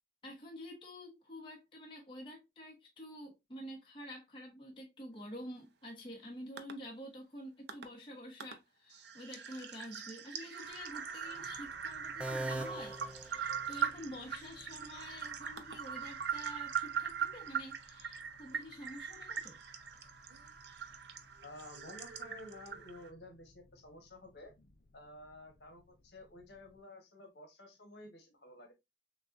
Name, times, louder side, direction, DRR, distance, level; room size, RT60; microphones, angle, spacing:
voice 1, 0.2-19.6, equal, 25° left, 1.2 m, -48 dB
sound 1, 6.6-6.7 7.7-7.9 8.4-8.5 8.9-23.1, right 7 dB, 70° right, 0.6 m, -41 dB
sound 2, 10.6-26.8, left 2 dB, 55° left, 0.5 m, -63 dB
sound 3, 12.2-14.1, right 1 dB, 5° right, 0.4 m, -41 dB
voice 2, 21.4-24.5 24.9-28.7, left 2 dB, 70° left, 1.3 m, -52 dB
6.4 x 2.4 x 2.5 m
head